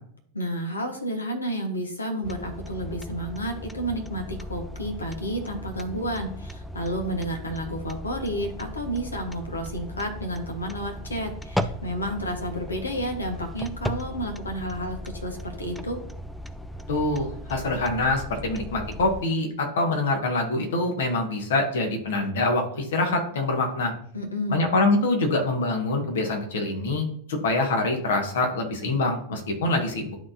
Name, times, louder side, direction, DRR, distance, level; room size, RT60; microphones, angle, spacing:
voice 1, 0.3-16.0 24.1-24.7, equal, 80° left, 3 dB, 1.5 m, -31 dB
sound 1, 2.2-19.2, equal, ahead, 0.4 m, -37 dB
voice 2, 16.9-23.9 24.5-30.1, left 2 dB, 60° left, 3 dB, 1.6 m, -25 dB
11.5 x 4.2 x 2.8 m, 0.63 s
figure-of-eight pair, 90°, 0 cm